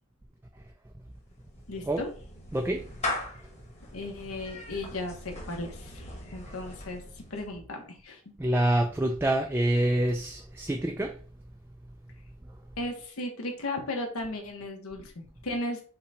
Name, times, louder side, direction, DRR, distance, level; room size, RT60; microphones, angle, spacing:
Clapping / Meow, 1.1-7.6, left 2 dB, 30° left, 1.3 m, -40 dB
voice 1, 1.7-2.1 3.9-7.0 7.3-8.2 12.8-15.8, left 2 dB, 80° left, 1.0 m, -36 dB
voice 2, 2.5-2.9 8.4-11.2, right 1 dB, 10° right, 0.3 m, -26 dB
5.6 x 2.3 x 4.1 m
head